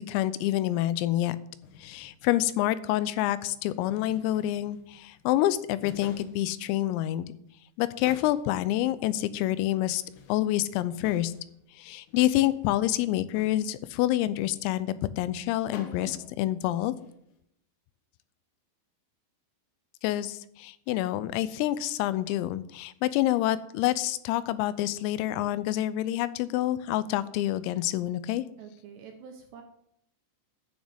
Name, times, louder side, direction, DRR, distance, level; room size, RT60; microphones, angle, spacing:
voice 1, 0.0-1.4 1.8-7.3 7.8-10.0 10.3-11.3 11.8-16.9 20.0-28.4, left 14 dB, 90° left, 15 dB, 3.4 m, -27 dB
sound 1, 1.6-2.8 3.5-5.3 5.6-7.2 7.5-7.6 7.9-9.0 9.8-11.6 11.9-12.7 13.3-13.9 15.4-15.5 15.7-16.4 16.8-17.3, left 5 dB, 65° left, 3.2 m, -50 dB
voice 2, 28.6-29.6, right 6 dB, 75° right, 4 dB, 2.6 m, -46 dB
10.5 x 6.3 x 8.0 m, 0.75 s
omnidirectional pair, 5.9 m